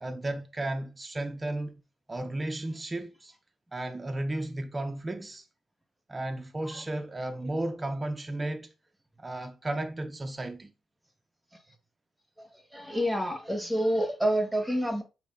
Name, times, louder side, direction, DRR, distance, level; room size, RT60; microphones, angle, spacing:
voice 1, 0.0-1.8 2.1-3.3 3.7-5.5 6.1-8.7 9.2-10.7, right 1 dB, 20° right, 0.5 m, -34 dB
voice 2, 12.7-15.0, equal, 5° right, 1.3 m, -28 dB
6.1 x 2.7 x 2.5 m
cardioid pair, 90°, 0 cm